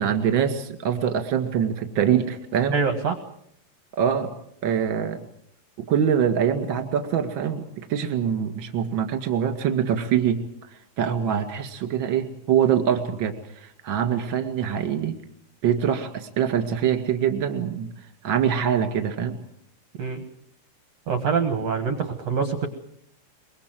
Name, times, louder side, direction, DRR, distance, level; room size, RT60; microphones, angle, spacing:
voice 1, 0.0-2.7 4.0-4.3 4.6-5.2 5.9-7.6 7.9-10.4 11.0-13.3 13.8-15.1 15.6-17.9 18.2-19.4, right 8 dB, 40° right, 7 dB, 2.0 m, -24 dB
voice 2, 2.7-3.2 20.0-20.2 21.1-22.7, right 5 dB, 60° right, 8 dB, 1.8 m, -25 dB
23.5 x 22.0 x 7.7 m, 0.71 s
omnidirectional pair, 5.0 m